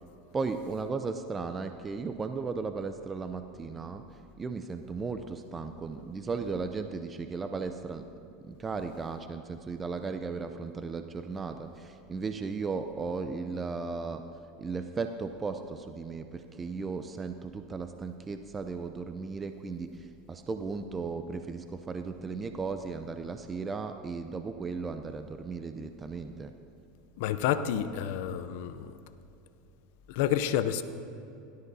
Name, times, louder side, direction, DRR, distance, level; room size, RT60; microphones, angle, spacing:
voice 1, 0.3-4.0 4.4-8.0 8.4-14.2 14.6-26.5, right 4 dB, 20° right, 8 dB, 0.5 m, -36 dB
voice 2, 27.2-28.9 30.1-30.8, left 10 dB, 70° left, 11 dB, 0.5 m, -29 dB
17.0 x 12.5 x 2.7 m, 2.8 s
supercardioid pair, 115°, 0 cm